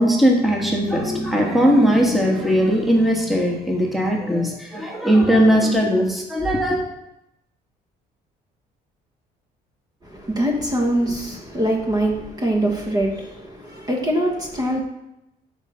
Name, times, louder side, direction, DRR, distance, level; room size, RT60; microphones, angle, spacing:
voice 1, 0.0-6.8, equal, ahead, -1 dB, 1.3 m, -19 dB
voice 2, 10.0-14.8, right 1 dB, 20° right, 0 dB, 1.3 m, -23 dB
6.5 x 4.2 x 6.3 m, 0.86 s
cardioid pair, 110°, 17 cm